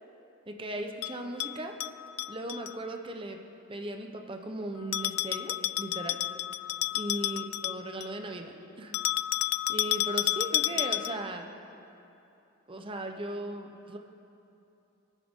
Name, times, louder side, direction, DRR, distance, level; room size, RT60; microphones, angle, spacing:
voice 1, 0.5-1.8 2.3-3.4 3.7-6.2 6.9-9.0 9.7-11.5 12.7-14.0, right 1 dB, 25° right, 4 dB, 0.9 m, -37 dB
Bell, 1.0-2.7 4.9-8.2 8.9-11.3, left 16 dB, 80° left, 0.3 m, -31 dB
27.0 x 9.3 x 3.8 m, 2.8 s
head